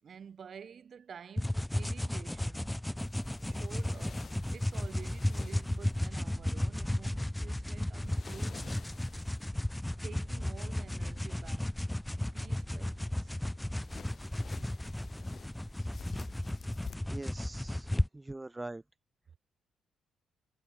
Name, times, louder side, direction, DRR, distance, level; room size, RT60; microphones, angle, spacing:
voice 1, 0.0-2.7 3.4-8.8 10.0-11.7 12.3-13.4, right 7 dB, 50° right, 4.6 m, -50 dB
sound 1, 1.4-18.1, left 1 dB, 5° left, 0.9 m, -34 dB
sound 2, 3.0-6.1 8.0-9.5 13.8-17.0, left 6 dB, 45° left, 1.8 m, -52 dB
voice 2, 17.1-18.8, right 2 dB, 15° right, 0.3 m, -43 dB
cardioid pair, 90°, 0 cm